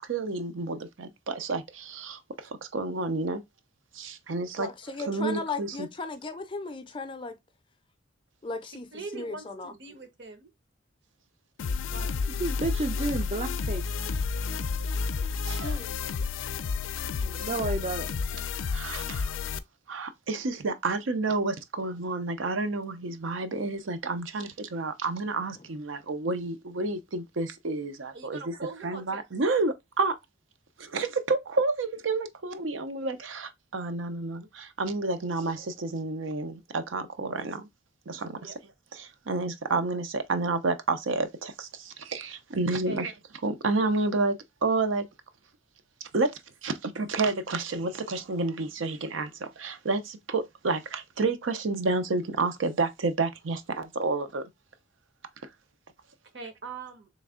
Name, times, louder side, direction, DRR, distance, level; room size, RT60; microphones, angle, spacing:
voice 1, 0.0-3.4 3.9-4.7 5.1-5.9 15.4-15.8 18.7-19.4 19.9-28.5 28.8-30.1 30.8-37.7 38.1-38.5 38.9-43.1 43.4-45.1 46.0-46.3 46.6-54.5, right 3 dB, 85° right, 0.6 m, -30 dB
voice 2, 4.6-7.4 8.4-9.7 15.6-16.0, left 3 dB, 25° left, 0.5 m, -36 dB
voice 3, 8.7-10.5 11.9-12.1 28.1-29.2 38.4-38.5 39.1-39.2 42.8-43.0 56.3-57.1, right 3 dB, 65° right, 0.9 m, -42 dB
sound 1, 11.6-19.6, left 5 dB, 85° left, 0.4 m, -31 dB
voice 4, 12.4-13.9 17.2-18.1, right 2 dB, 35° right, 0.4 m, -31 dB
3.4 x 3.2 x 3.6 m
head